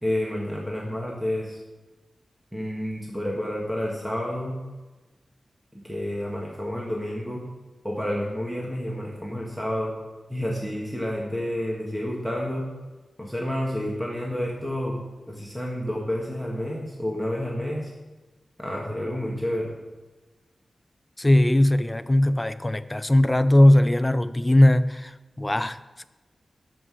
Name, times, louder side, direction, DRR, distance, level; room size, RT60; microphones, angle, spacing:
voice 1, 0.0-1.6 2.5-4.6 5.7-7.4 7.8-9.9 10.3-12.7 13.2-15.0 15.3-17.9 18.6-19.7, left 1 dB, 5° right, 1.6 m, -29 dB
voice 2, 21.2-26.0, left 1 dB, 15° left, 0.4 m, -19 dB
12.5 x 5.6 x 6.3 m
wide cardioid pair, 140°, 0 cm